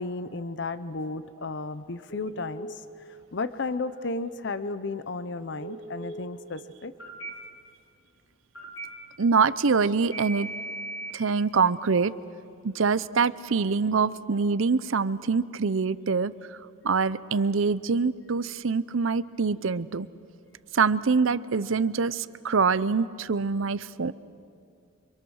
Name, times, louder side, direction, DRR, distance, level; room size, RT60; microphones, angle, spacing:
voice 1, 0.0-2.7 3.3-6.9, left 3 dB, 55° left, 13 dB, 0.7 m, -33 dB
Telephone, 2.1-2.6 5.6-6.1 7.0-7.3 8.5-8.9 10.1-11.1, right 3 dB, 75° left, 3.7 m, -38 dB
voice 2, 9.2-10.5 11.1-12.1 12.6-16.3 16.8-20.1 20.7-24.1, right 5 dB, 70° right, 16 dB, 0.6 m, -24 dB
29.5 x 25.5 x 6.4 m, 2.4 s
head